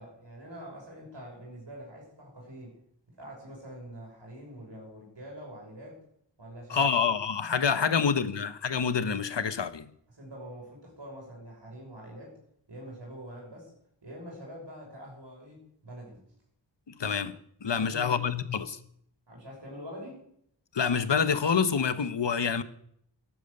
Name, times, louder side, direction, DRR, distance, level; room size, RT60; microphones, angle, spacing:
voice 1, 0.0-2.8 3.1-6.0 6.4-7.1 7.7-8.3 10.1-12.4 12.7-13.7 14.0-16.2 17.7-18.3 19.3-20.2, equal, 70° right, 6.1 m, -45 dB
voice 2, 6.7-9.9 16.9-17.3 17.6-18.8 20.7-22.6, left 6 dB, 70° left, 1.0 m, -27 dB
12.5 x 12.0 x 6.6 m
wide cardioid pair, 60°, 44 cm